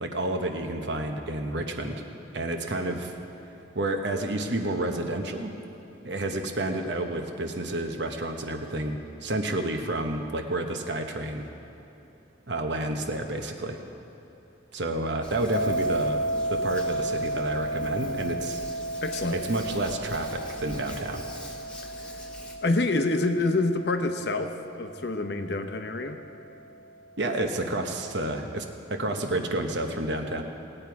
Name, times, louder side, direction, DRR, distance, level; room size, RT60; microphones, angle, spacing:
voice 1, 0.0-2.0 2.3-3.1 3.7-5.5 6.0-11.4 12.5-13.8 14.7-16.2 16.5-18.6 19.3-21.3 27.2-30.4, right 1 dB, 65° right, 4 dB, 1.0 m, -30 dB
Hands, 15.2-22.6, left 1 dB, 5° left, 1.1 m, -45 dB
sound 1, 15.5-26.4, right 1 dB, 75° left, 1.1 m, -33 dB
voice 2, 19.0-19.4 22.6-24.5 24.8-26.2, left 2 dB, 55° left, 6 dB, 0.8 m, -26 dB
18.5 x 8.9 x 4.7 m, 2.9 s
head